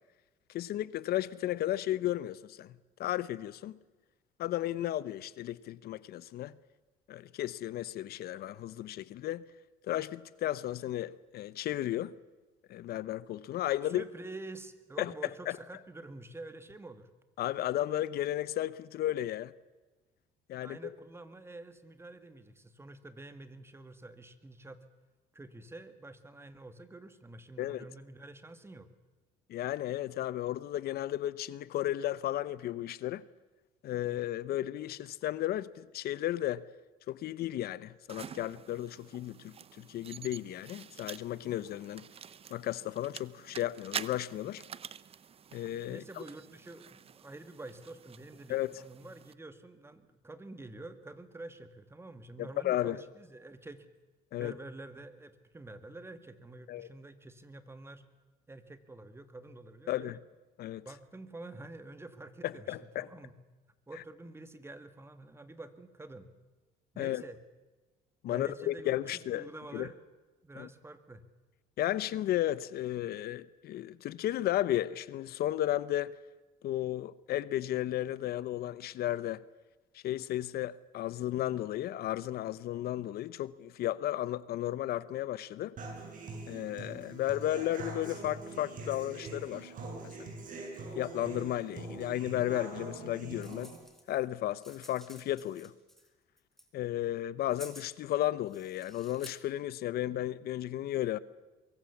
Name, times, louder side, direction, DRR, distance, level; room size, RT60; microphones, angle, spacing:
voice 1, 0.5-2.7 3.0-3.8 4.4-6.5 7.1-9.4 9.8-12.1 12.7-14.0 15.0-15.1 15.5-15.6 17.4-19.5 20.5-20.8 27.6-27.8 29.5-33.2 33.8-36.7 37.1-42.1 42.5-44.6 45.5-46.2 48.5-48.7 52.4-53.0 54.3-54.5 56.7-56.9 59.9-60.2 60.6-60.8 62.4-63.1 67.0-67.2 68.2-69.5 69.7-69.9 70.6-70.7 71.8-76.1 76.6-79.4 79.9-85.7 86.5-89.7 90.0-90.3 90.9-93.7 94.1-95.7 96.7-101.2, left 13 dB, 65° left, 0.8 m, -34 dB
voice 2, 13.9-17.1 20.6-24.8 25.3-28.9 45.9-53.9 54.3-58.0 58.5-60.2 60.9-63.3 63.9-66.3 66.9-67.4 68.2-70.0 70.4-71.2, right 2 dB, 15° right, 2.0 m, -48 dB
sound 1, 38.1-49.3, right 8 dB, 35° right, 0.7 m, -47 dB
Human voice / Acoustic guitar, 85.8-93.8, right 3 dB, 50° right, 7.9 m, -44 dB
sound 2, 93.4-94.3 94.6-96.1 96.4-96.7 97.5-97.9 98.5-99.3, left 1 dB, ahead, 3.9 m, -53 dB
23.5 x 22.5 x 7.2 m
cardioid pair, 110°, 17 cm